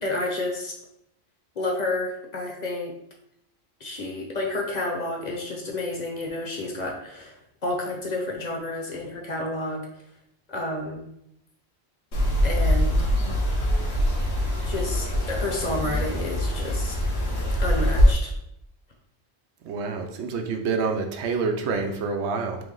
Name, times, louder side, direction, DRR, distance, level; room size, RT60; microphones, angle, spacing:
voice 1, 0.0-0.7 1.6-2.9 3.8-9.9 10.5-11.0 12.4-13.1 14.6-17.0 17.6-18.3, left 2 dB, 45° left, 0 dB, 0.8 m, -30 dB
sound 1, 12.1-18.1, equal, 90° left, 1.1 m, -23 dB
voice 2, 19.6-22.6, right 4 dB, 85° right, 4 dB, 0.9 m, -27 dB
3.4 x 3.0 x 3.7 m, 0.77 s
omnidirectional pair, 1.1 m